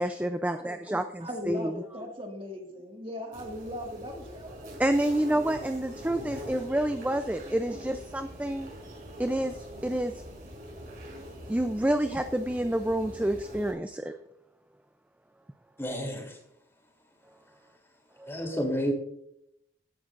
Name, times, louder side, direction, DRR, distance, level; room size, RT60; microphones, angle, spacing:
voice 1, 0.0-2.1 4.8-8.7 9.2-9.5 9.8-10.1 11.5-14.1 18.2-18.6, right 1 dB, 10° right, 8 dB, 0.4 m, -29 dB
voice 2, 1.2-4.8 5.5-5.8 6.6-8.0, left 1 dB, 30° right, 2 dB, 1.9 m, -39 dB
sound 1, 3.3-13.7, equal, 50° right, 5.3 m, -44 dB
voice 3, 15.8-16.4 18.3-18.9, equal, 15° left, 1 dB, 3.1 m, -30 dB
15.5 x 11.0 x 2.5 m, 0.77 s
head